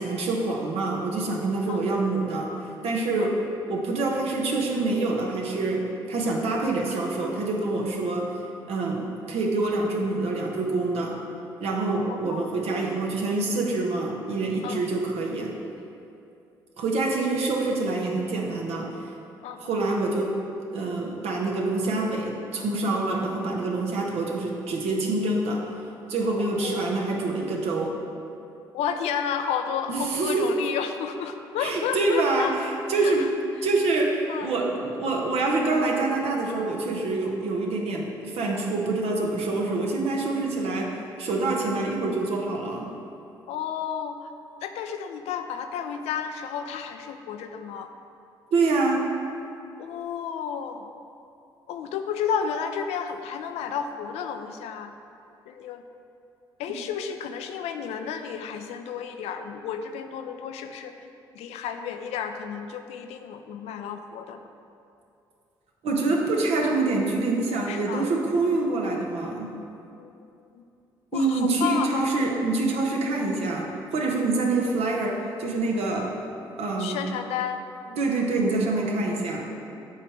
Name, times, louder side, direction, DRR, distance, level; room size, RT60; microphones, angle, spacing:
voice 1, 0.0-3.4 3.7-8.3 8.7-11.1 11.6-15.5 16.8-18.9 19.6-20.3 20.7-25.6 26.1-28.0 29.9-30.5 31.6-33.3 33.6-42.9 48.5-49.1 65.8-69.5 71.1-76.1 76.6-77.1 78.0-79.4, right 3 dB, 60° right, 0 dB, 1.1 m, -26 dB
voice 2, 12.1-12.6 14.6-14.8 19.4-19.7 26.4-26.9 28.7-32.5 32.9-33.3 34.3-34.5 39.6-39.7 43.5-44.3 44.6-47.9 49.8-50.8 51.7-54.9 55.5-55.8 56.6-61.1 61.3-64.4 67.7-68.1 69.9-70.6 71.1-71.9 76.0-76.1 76.8-78.0, left 7 dB, 65° left, 7 dB, 0.5 m, -32 dB
8.4 x 3.3 x 6.3 m, 2.7 s
hypercardioid pair, 45°, 12 cm